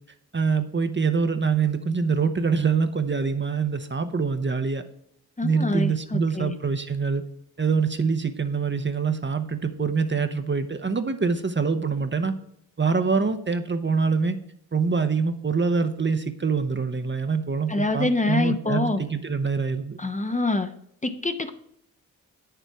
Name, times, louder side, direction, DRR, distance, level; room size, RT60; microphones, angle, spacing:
voice 1, 0.3-4.8 5.4-7.2 7.6-12.3 12.8-14.4 14.7-20.0, right 5 dB, 30° right, 9 dB, 0.8 m, -25 dB
voice 2, 5.4-6.6 17.7-19.0 20.0-20.7 21.0-21.5, left 2 dB, 20° left, 8 dB, 0.9 m, -25 dB
8.7 x 6.9 x 4.7 m, 0.70 s
cardioid pair, 60°, 38 cm